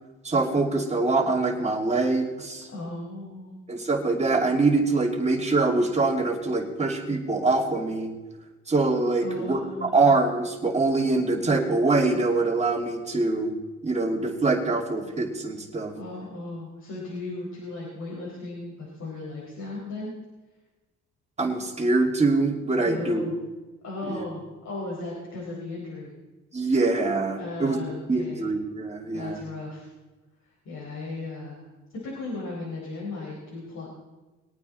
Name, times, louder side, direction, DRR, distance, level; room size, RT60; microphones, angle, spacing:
voice 1, 0.2-2.7 3.7-8.1 8.7-13.5 13.8-15.9 21.4-23.2 24.1-24.2 26.5-27.8 28.1-29.4, right 3 dB, 20° right, 0 dB, 2.6 m, -24 dB
voice 2, 2.7-3.6 9.2-10.1 16.0-20.1 22.8-23.4 23.8-26.1 27.4-28.4 29.1-29.9 30.4-33.9, left 2 dB, 65° left, -5 dB, 4.3 m, -36 dB
21.5 x 9.2 x 4.2 m, 1.2 s
cardioid pair, 90°, 30 cm